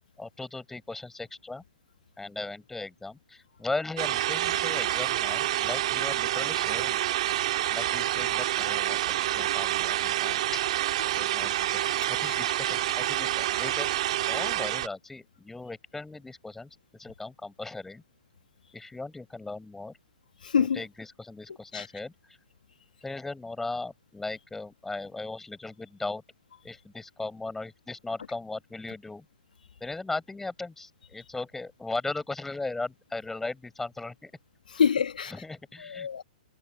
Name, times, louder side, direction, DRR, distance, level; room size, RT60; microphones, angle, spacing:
voice 1, 0.2-1.6 2.2-7.0 7.7-10.6 11.0-11.5 11.8-13.9 14.2-18.0 18.7-20.0 20.5-22.4 23.0-26.2 26.6-29.2 29.8-34.3 34.7-34.8 35.3-36.1, left 3 dB, 5° left, 6.5 m, -37 dB
sound 1, 4.0-14.9, right 14 dB, 55° right, 2.6 m, -28 dB
voice 2, 20.4-20.8 21.7-21.9 34.7-35.3 35.8-36.2, left 7 dB, 75° left, 1.7 m, -26 dB
figure-of-eight pair, 115°, 4 cm